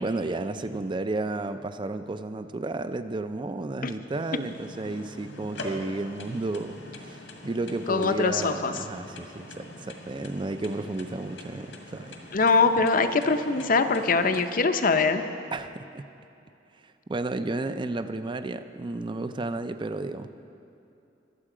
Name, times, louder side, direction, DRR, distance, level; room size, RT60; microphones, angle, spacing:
voice 1, 0.0-12.1 15.5-16.0 17.1-20.3, right 2 dB, 25° right, 10 dB, 0.4 m, -32 dB
sound 1, 4.1-14.4, left 2 dB, 80° left, 1.6 m, -43 dB
voice 2, 7.9-8.7 12.3-15.2, left 4 dB, 50° left, 8 dB, 0.6 m, -23 dB
22.0 x 7.5 x 5.0 m, 2.8 s
head